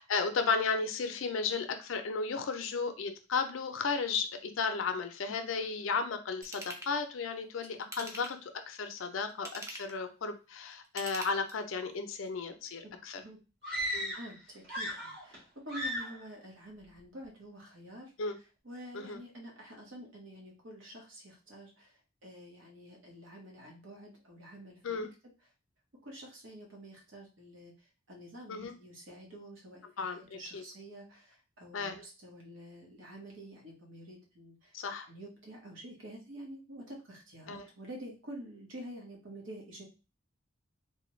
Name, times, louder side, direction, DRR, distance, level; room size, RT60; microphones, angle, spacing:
voice 1, 0.0-13.2 13.9-14.1 18.2-18.4 18.9-19.2 24.8-25.1 28.5-28.7 30.0-30.6 31.7-32.0 34.7-35.1 37.5-37.7, left 4 dB, 85° left, 8 dB, 0.5 m, -34 dB
Ratchet pawl / Tools, 6.4-6.9 7.8-8.5 9.3-10.0 10.8-11.8 12.3-12.4, right 1 dB, 15° right, 0.5 m, -44 dB
voice 2, 12.8-13.4 13.7-13.9 14.2-18.1 18.6-25.1 26.0-34.7 35.1-39.8, right 1 dB, 75° right, -1 dB, 1.2 m, -48 dB
sound 1, 13.6-14.4 14.6-15.4 15.7-16.2, equal, 60° right, 1.7 m, -36 dB
3.3 x 2.2 x 3.0 m, 0.31 s
head